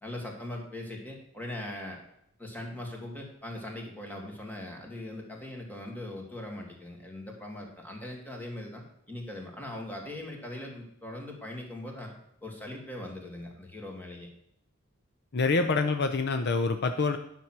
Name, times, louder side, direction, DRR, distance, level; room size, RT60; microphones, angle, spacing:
voice 1, 0.0-2.0 2.4-12.1 12.4-14.3, left 1 dB, 10° left, 0 dB, 2.2 m, -40 dB
voice 2, 15.3-17.2, left 4 dB, 55° left, 8 dB, 0.6 m, -26 dB
10.0 x 6.1 x 6.0 m, 0.75 s
head